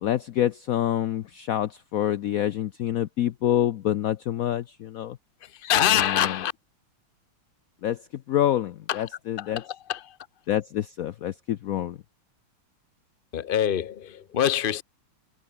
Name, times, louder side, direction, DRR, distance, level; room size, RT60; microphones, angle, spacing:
voice 1, 0.0-5.2 5.9-6.4 7.8-9.6 10.5-12.0, left 12 dB, 75° left, 0.8 m, -27 dB
voice 2, 5.6-6.5 8.9-9.0 9.4-10.2 13.3-14.8, left 10 dB, 40° left, 0.8 m, -25 dB
omnidirectional pair, 2.2 m